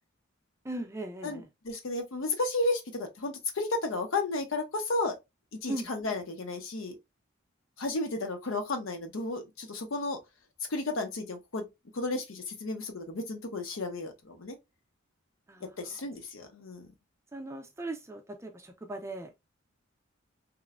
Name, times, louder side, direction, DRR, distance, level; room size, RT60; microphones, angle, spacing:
voice 1, 0.6-1.4 5.7-5.9 15.5-15.7 17.3-19.3, right 1 dB, 15° right, 0.4 m, -38 dB
voice 2, 1.2-5.2 5.6-6.9 7.8-10.2 10.7-11.7 11.9-14.6 15.8-16.9, left 2 dB, 75° left, 0.7 m, -33 dB
3.0 x 2.0 x 2.3 m
head